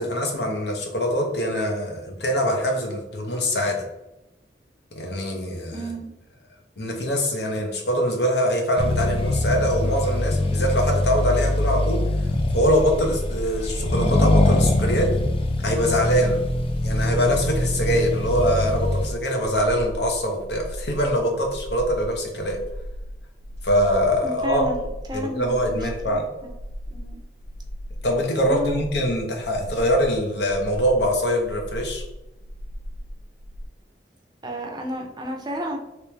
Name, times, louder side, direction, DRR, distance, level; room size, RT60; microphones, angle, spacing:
voice 1, 0.0-3.8 5.0-5.9 6.8-12.0 12.5-15.1 15.6-16.4 16.8-22.6 23.6-24.7 25.1-26.3 28.0-32.0, equal, 70° left, 2 dB, 0.9 m, -23 dB
voice 2, 5.7-6.1 24.2-26.2 26.9-27.2 28.4-28.8 34.4-35.8, equal, 25° right, 2 dB, 0.5 m, -32 dB
Accelerating revving vroom, 8.8-19.2, left 1 dB, 30° left, 0.4 m, -23 dB
sound 1, 19.3-33.7, equal, 65° right, 0.6 m, -37 dB
3.2 x 3.0 x 3.3 m, 0.96 s
head